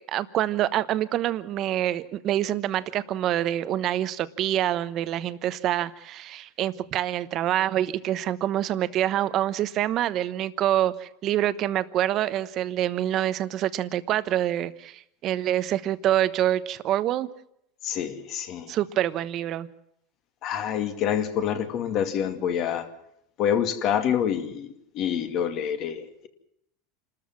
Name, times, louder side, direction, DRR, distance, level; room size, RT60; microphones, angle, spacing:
voice 1, 0.0-17.3 18.7-19.7, right 12 dB, 45° right, 14 dB, 1.1 m, -26 dB
voice 2, 17.8-18.7 20.4-22.9 23.4-24.7 24.9-26.3, left 9 dB, 50° left, 7 dB, 2.4 m, -27 dB
27.5 x 13.5 x 7.5 m, 0.76 s
supercardioid pair, 120°, 0 cm